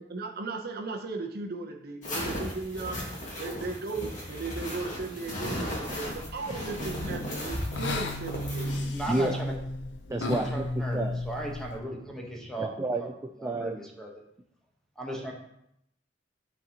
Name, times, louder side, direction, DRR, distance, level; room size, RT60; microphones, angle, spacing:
voice 1, 0.0-9.0, right 3 dB, 55° right, 3 dB, 0.8 m, -37 dB
sound 1, 2.0-8.8, equal, 45° left, 1.7 m, -36 dB
sound 2, 5.5-11.8, left 2 dB, 75° left, 0.6 m, -35 dB
voice 2, 8.9-9.5 10.3-11.0 11.2-12.7 13.0-13.1 13.4-14.1 15.0-15.3, right 1 dB, 5° left, -1 dB, 1.1 m, -36 dB
voice 3, 10.1-11.2 12.6-13.8, right 2 dB, 15° right, 4 dB, 0.3 m, -31 dB
11.0 x 4.1 x 2.9 m, 0.78 s
head